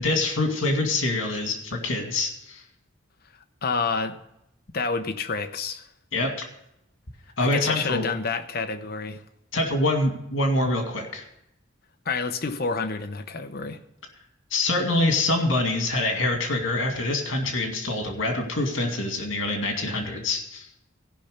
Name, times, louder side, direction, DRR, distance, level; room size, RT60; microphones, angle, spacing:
voice 1, 0.0-2.6 6.1-6.5 7.4-8.0 9.5-11.3 14.5-20.7, left 2 dB, 80° left, 3 dB, 2.3 m, -25 dB
voice 2, 3.6-4.2 4.7-5.9 7.4-9.2 12.1-13.8, left 4 dB, 50° left, 7 dB, 0.9 m, -28 dB
15.0 x 5.8 x 6.7 m, 0.81 s
head